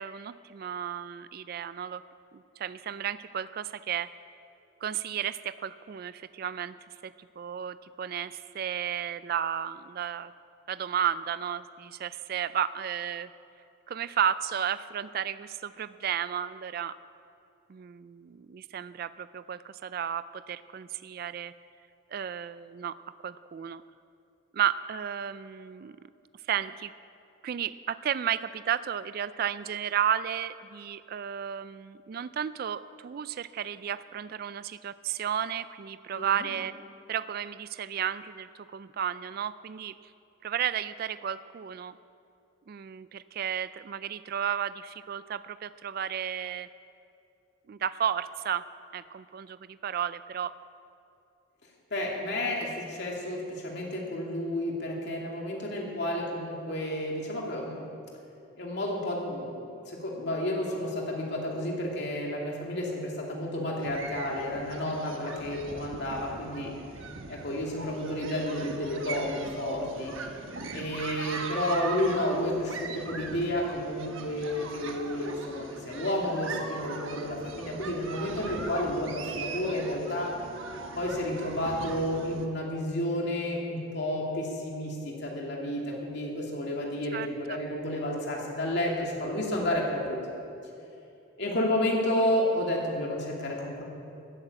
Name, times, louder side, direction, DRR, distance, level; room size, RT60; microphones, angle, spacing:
voice 1, 0.0-2.0 2.6-4.1 4.8-6.7 7.0-10.3 10.7-13.3 13.9-16.9 17.7-21.5 22.1-23.0 23.2-23.8 24.5-26.0 26.5-26.9 27.4-36.7 37.1-40.0 40.4-42.0 42.7-46.7 47.7-48.6 48.9-50.5 87.1-87.6, right 9 dB, 50° right, 15 dB, 0.3 m, -33 dB
voice 2, 36.1-36.5 51.9-57.9 58.6-66.7 67.3-70.1 70.7-80.3 81.0-90.4 91.4-93.8, left 1 dB, 55° left, -2 dB, 2.7 m, -31 dB
sound 1, 63.8-82.5, right 3 dB, 80° right, 1.2 m, -40 dB
13.0 x 8.9 x 8.6 m, 2.7 s
head